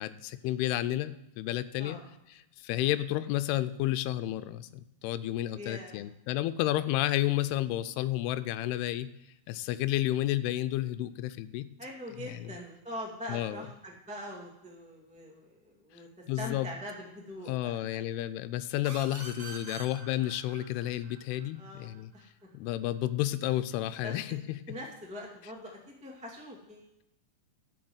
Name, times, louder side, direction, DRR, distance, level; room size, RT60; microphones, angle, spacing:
voice 1, 0.0-2.0 2.6-9.1 9.5-11.7 12.2-12.5 13.3-13.6 16.3-16.7 17.5-22.1 22.5-24.8, left 14 dB, 85° left, 12 dB, 2.6 m, -31 dB
voice 2, 5.5-6.1 11.8-16.1 16.4-18.0 21.5-22.3 24.0-24.4 24.7-27.0, equal, 5° right, -2 dB, 0.9 m, -43 dB
sound 1, 18.8-22.2, right 3 dB, 30° right, 2.8 m, -46 dB
12.0 x 6.7 x 7.9 m, 0.87 s
omnidirectional pair, 4.5 m